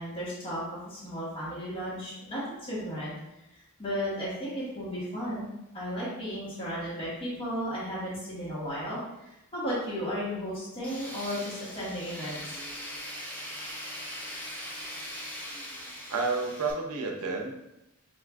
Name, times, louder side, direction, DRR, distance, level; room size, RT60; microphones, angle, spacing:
voice 1, 0.0-3.1 3.5-5.5 5.7-12.6, equal, 25° left, -8 dB, 1.1 m, -34 dB
Tools, 10.8-16.7, equal, 5° left, 0.5 m, -40 dB
voice 2, 16.1-17.5, right 4 dB, 80° right, 2 dB, 0.6 m, -30 dB
5.3 x 2.4 x 2.3 m, 0.89 s
head